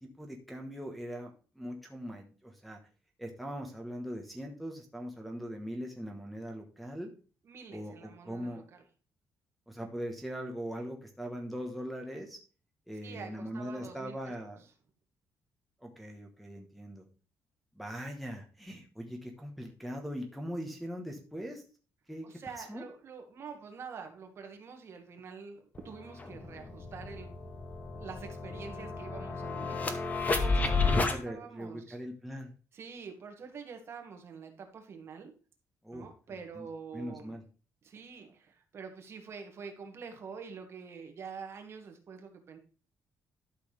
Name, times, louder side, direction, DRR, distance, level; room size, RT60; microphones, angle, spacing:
voice 1, 0.0-2.8 3.2-7.1 7.7-8.6 9.7-12.4 12.9-14.6 15.8-17.0 17.7-21.6 22.1-22.3 22.6-22.8 28.5-28.9 30.6-32.5 35.8-36.7 36.9-37.4, equal, ahead, 0 dB, 1.2 m, -41 dB
voice 2, 7.5-8.8 13.0-14.2 22.2-27.3 27.9-32.0 32.7-35.3 35.9-37.3 37.8-42.6, right 5 dB, 40° right, 5 dB, 1.8 m, -46 dB
sound 1, 25.8-25.9 26.2-31.2, left 3 dB, 25° left, 1.0 m, -31 dB
12.0 x 6.2 x 3.4 m, 0.37 s
cardioid pair, 165°, 7 cm